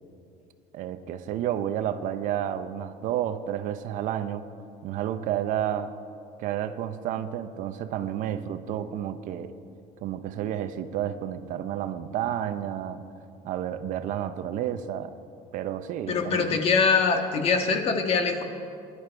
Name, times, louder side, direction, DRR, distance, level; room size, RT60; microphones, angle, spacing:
voice 1, 0.7-4.5 4.8-5.9 6.4-9.5 10.0-13.0 13.4-15.2 15.5-16.6, right 10 dB, 55° right, 11 dB, 0.8 m, -31 dB
voice 2, 16.1-18.4, left 5 dB, 40° left, 5 dB, 1.5 m, -23 dB
20.5 x 11.5 x 4.6 m, 2.5 s
cardioid pair, 140°, 15 cm